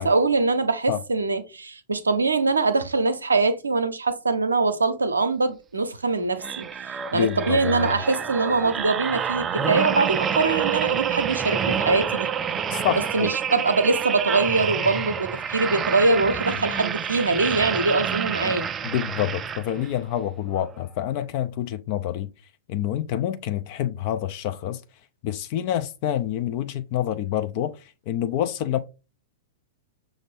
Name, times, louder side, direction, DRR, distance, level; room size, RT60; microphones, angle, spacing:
voice 1, 0.0-6.7 7.1-12.3 12.9-18.7, right 3 dB, 85° right, 0.6 m, -23 dB
sound 1, 6.4-20.0 20.5-20.7, right 7 dB, 25° right, 0.3 m, -28 dB
voice 2, 7.1-7.9 12.7-13.3 16.7-16.8 18.8-22.3 22.7-24.8 25.2-27.8 28.1-28.8, left 11 dB, 50° left, 0.4 m, -27 dB
5.8 x 2.6 x 3.3 m
figure-of-eight pair, 105°, 0 cm